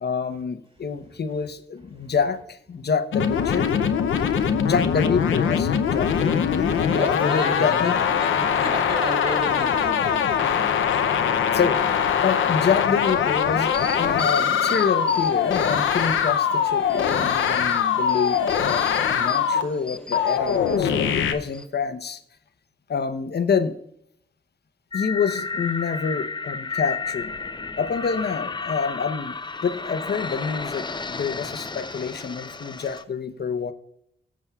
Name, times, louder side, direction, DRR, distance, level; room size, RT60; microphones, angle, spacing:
voice 1, 0.0-3.7 4.6-8.0 11.5-11.8 12.2-22.2 22.9-23.7 24.9-27.3 27.8-29.4 29.6-33.7, left 6 dB, 55° left, 10 dB, 0.9 m, -27 dB
sound 1, 3.1-19.6 20.1-21.3, left 7 dB, 85° left, 0.6 m, -22 dB
voice 2, 6.9-11.2, right 1 dB, 30° right, 1 dB, 3.8 m, -34 dB
sound 2, 13.7-16.4 16.8-20.8 21.3-21.7, left 2 dB, 5° left, 1.6 m, -39 dB
sound 3, 24.9-33.0, left 4 dB, 25° left, 0.6 m, -32 dB
16.0 x 7.4 x 2.4 m, 0.72 s
supercardioid pair, 45°, 20 cm